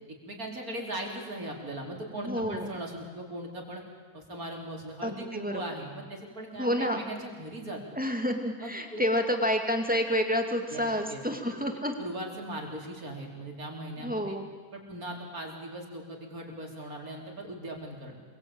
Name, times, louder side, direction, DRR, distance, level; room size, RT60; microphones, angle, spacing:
voice 1, 0.2-3.8 4.1-7.8 8.6-9.0 10.7-11.2 11.5-11.6 12.0-14.4 14.7-18.1, right 1 dB, 75° right, 0 dB, 4.9 m, -39 dB
voice 2, 2.2-2.7 5.0-5.6 6.6-7.0 8.0-12.0 14.0-14.5, equal, 5° right, 4 dB, 2.3 m, -29 dB
27.0 x 23.0 x 9.0 m, 1.5 s
omnidirectional pair, 1.5 m